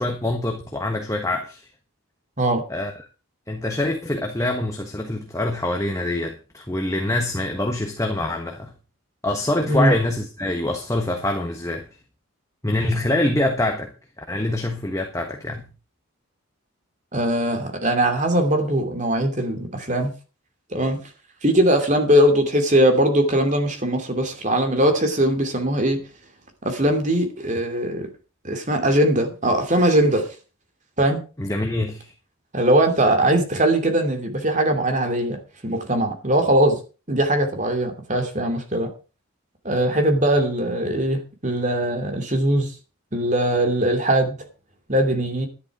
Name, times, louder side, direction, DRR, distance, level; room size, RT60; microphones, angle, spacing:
voice 1, 0.0-1.7 2.7-2.9 3.5-8.7 9.2-11.9 12.6-13.9 14.2-15.7 31.4-32.1, left 1 dB, 15° left, 1.3 m, -25 dB
voice 2, 17.1-20.1 20.7-21.0 21.4-26.0 26.6-28.1 28.4-30.3 31.0-31.2 32.5-36.8 37.1-38.9 39.6-42.7 43.1-44.3 44.9-45.5, right 1 dB, 35° right, 2.7 m, -20 dB
11.5 x 11.0 x 4.9 m
head